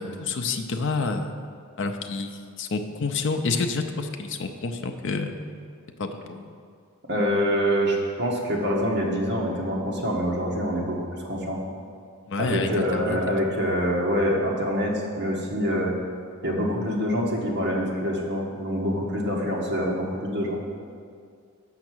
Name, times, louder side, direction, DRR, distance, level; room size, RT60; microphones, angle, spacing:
voice 1, 0.0-1.3 1.8-5.3 6.0-6.5 12.3-13.2, left 4 dB, 60° left, 6 dB, 0.5 m, -28 dB
voice 2, 7.1-11.6 12.4-15.9 16.4-20.6, equal, 55° right, -2 dB, 1.3 m, -25 dB
6.4 x 5.9 x 6.1 m, 2.2 s
head